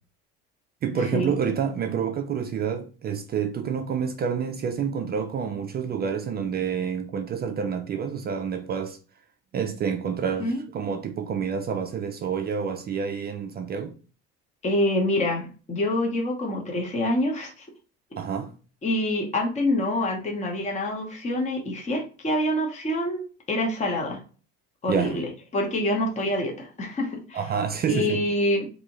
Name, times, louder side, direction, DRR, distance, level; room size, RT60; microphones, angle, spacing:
voice 1, 0.8-9.0 9.5-14.0 18.2-18.5 24.9-25.2 27.3-28.3, right 7 dB, 30° right, 0.4 m, -28 dB
voice 2, 14.6-17.7 18.8-23.2 23.5-24.2 24.8-27.4 27.9-28.7, left 1 dB, 20° left, 0.8 m, -26 dB
3.4 x 2.7 x 2.9 m
cardioid pair, 115°, 31 cm